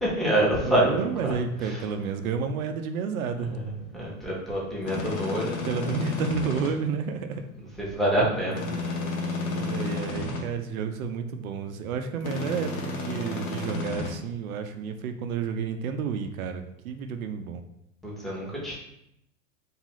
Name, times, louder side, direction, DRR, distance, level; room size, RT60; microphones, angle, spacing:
voice 1, 0.0-1.3 1.6-1.8 3.5-6.0 7.8-8.8 18.0-18.8, right 1 dB, ahead, -6 dB, 0.8 m, -27 dB
voice 2, 0.6-3.6 5.6-7.5 9.4-17.6, right 6 dB, 90° right, 8 dB, 0.5 m, -31 dB
sound 1, 4.8-6.7 8.5-10.4 12.2-14.1, left 3 dB, 85° left, 1.0 m, -32 dB
2.6 x 2.4 x 3.0 m, 0.79 s
hypercardioid pair, 115°, 41 cm